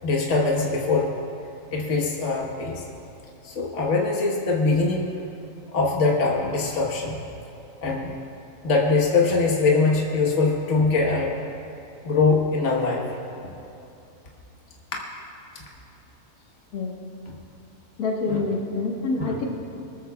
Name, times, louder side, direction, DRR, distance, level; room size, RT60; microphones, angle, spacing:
voice 1, 0.0-1.1 1.7-2.8 3.4-5.1 5.7-7.2 7.8-8.1 8.6-11.4 12.0-13.0 13.4-13.5, left 3 dB, 50° left, -2 dB, 1.7 m, -22 dB
voice 2, 18.0-19.4, left 3 dB, 75° left, -2 dB, 1.9 m, -26 dB
23.0 x 13.5 x 2.4 m, 2.7 s
omnidirectional pair, 1.6 m